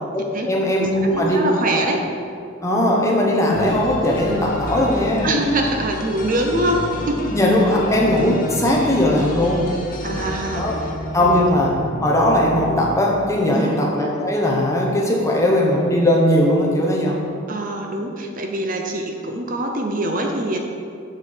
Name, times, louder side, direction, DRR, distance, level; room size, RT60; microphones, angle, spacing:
voice 1, 0.1-1.4 1.7-1.9 2.6-5.3 7.3-9.7 10.6-10.8 11.1-11.7 12.0-17.2, left 1 dB, 15° left, -2 dB, 1.0 m, -19 dB
voice 2, 0.8-2.0 5.2-6.8 7.1-7.2 10.0-10.9 11.2-11.4 13.5-13.8 17.5-20.6, right 1 dB, 40° right, 2 dB, 0.7 m, -24 dB
sound 1, 3.5-13.4, equal, 40° left, 0.8 m, -30 dB
7.9 x 6.8 x 4.5 m, 2.4 s
head